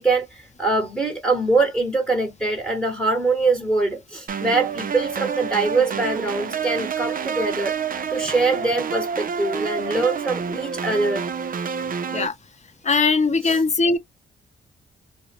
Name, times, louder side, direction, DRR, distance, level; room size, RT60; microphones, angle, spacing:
voice 1, 0.0-7.8 8.1-11.3 13.4-13.6, right 3 dB, 5° left, 1.0 m, -23 dB
sound 1, 4.3-12.3, right 7 dB, 40° right, 0.4 m, -28 dB
voice 2, 12.8-14.0, left 4 dB, 35° left, 0.8 m, -20 dB
2.5 x 2.1 x 2.9 m
supercardioid pair, 60°, 21 cm